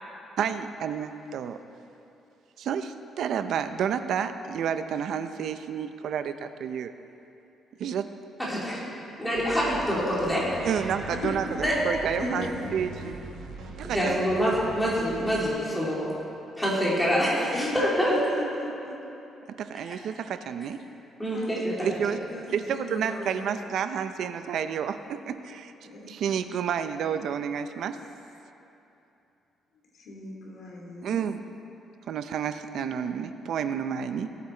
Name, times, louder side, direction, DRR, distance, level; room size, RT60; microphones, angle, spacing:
voice 1, 0.4-1.6 2.6-6.9 7.8-8.1 10.6-11.5 11.8-13.2 13.8-14.2 19.6-20.8 21.8-22.2 22.5-25.7 26.1-28.0 31.0-31.4 32.1-34.3, right 8 dB, 60° right, 10 dB, 0.5 m, -30 dB
voice 2, 8.5-8.8 9.2-10.8 11.6-11.7 13.9-16.1 16.6-18.1 19.9-20.0 21.2-21.9, equal, 5° left, -7 dB, 2.7 m, -26 dB
sound 1, 9.3-15.5, right 2 dB, 80° right, 1.3 m, -41 dB
voice 3, 11.1-11.6 12.2-12.7 17.5-17.8 18.1-19.0 21.3-21.6 22.3-23.3 25.8-26.1 29.9-31.2, left 1 dB, 60° left, -2 dB, 2.5 m, -36 dB
18.0 x 8.5 x 4.4 m, 2.8 s
cardioid pair, 165°, 0 cm